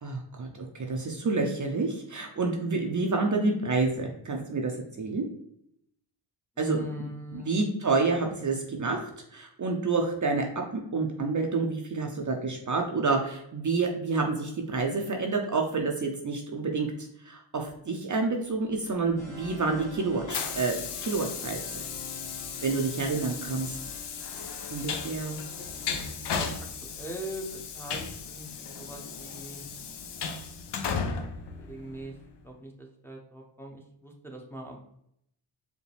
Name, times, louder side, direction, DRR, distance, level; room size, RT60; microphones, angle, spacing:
voice 1, 0.0-5.3 6.6-16.9 17.2-21.8 22.6-23.8 24.7-25.4, right 3 dB, 35° right, 2 dB, 0.6 m, -29 dB
voice 2, 6.6-7.6 25.7-29.6 31.5-32.2 32.4-34.8, equal, 5° left, -1 dB, 0.8 m, -42 dB
Train, 19.1-32.3, left 6 dB, 55° left, 0.7 m, -36 dB
sound 1, 19.2-26.0, left 3 dB, 35° left, 1.6 m, -46 dB
5.0 x 2.2 x 3.3 m, 0.73 s
cardioid pair, 65°, 50 cm